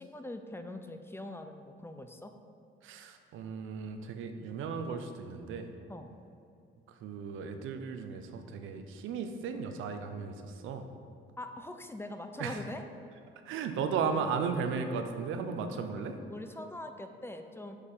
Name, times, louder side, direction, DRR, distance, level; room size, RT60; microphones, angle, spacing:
voice 1, 0.0-2.3 5.9-6.1 11.4-12.8 16.3-17.8, left 1 dB, 10° left, 7 dB, 0.5 m, -42 dB
voice 2, 2.8-5.7 7.0-10.9 12.4-12.6 13.5-16.2, right 5 dB, 85° right, 7 dB, 0.7 m, -35 dB
6.7 x 4.9 x 5.5 m, 2.6 s
cardioid pair, 90°, 20 cm